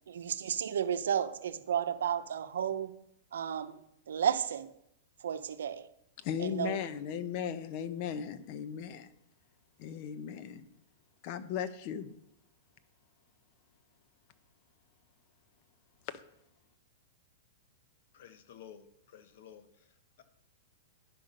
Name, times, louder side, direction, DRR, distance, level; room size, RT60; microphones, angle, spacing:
voice 1, 0.1-2.9 3.3-4.7 5.2-5.9 6.4-6.8, right 8 dB, 85° right, 0.7 m, -33 dB
voice 2, 6.2-9.1 9.8-10.7 11.2-12.2 16.1-16.2, left 8 dB, 40° left, 0.8 m, -37 dB
voice 3, 18.1-18.8 19.1-19.6, left 9 dB, 60° left, 1.1 m, -51 dB
11.0 x 5.7 x 5.2 m
hypercardioid pair, 150°, 0 cm